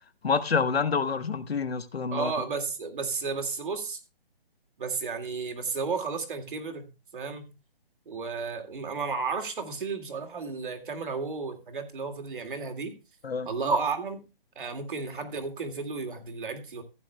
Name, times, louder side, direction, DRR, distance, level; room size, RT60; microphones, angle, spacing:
voice 1, 0.2-2.3 13.2-13.5, left 5 dB, 85° left, 1.3 m, -27 dB
voice 2, 2.1-4.0 4.8-6.9 7.1-7.5 8.1-12.9 13.5-14.2 14.6-16.8, right 4 dB, 55° right, 2.3 m, -32 dB
15.5 x 9.8 x 2.3 m
hypercardioid pair, 165°, 30 cm